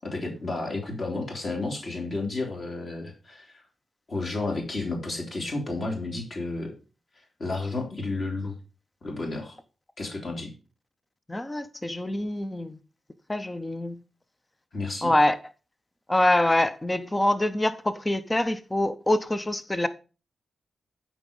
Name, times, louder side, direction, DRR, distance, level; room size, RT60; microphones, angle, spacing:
voice 1, 0.0-3.6 4.1-6.7 7.1-8.5 9.0-9.6 10.0-10.5 14.7-15.1, left 3 dB, 45° left, 3.0 m, -32 dB
voice 2, 11.3-12.8 13.3-14.0 15.0-15.4 16.1-19.9, left 1 dB, 15° left, 0.6 m, -25 dB
12.0 x 4.9 x 5.4 m
wide cardioid pair, 115°, 0 cm